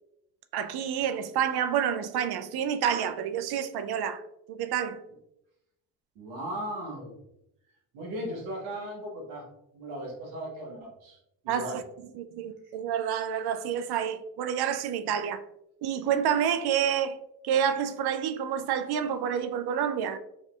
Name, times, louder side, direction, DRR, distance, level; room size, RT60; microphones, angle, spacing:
voice 1, 0.5-4.2 4.5-5.0 11.5-11.8 12.1-15.4 15.8-17.2 17.4-20.2, right 8 dB, 55° right, 0.5 m, -28 dB
voice 2, 6.1-7.2 7.9-9.5 9.7-11.2 11.4-11.8 12.6-12.7, right 1 dB, 90° right, 1.1 m, -37 dB
4.7 x 2.7 x 2.3 m
hypercardioid pair, 55°, 48 cm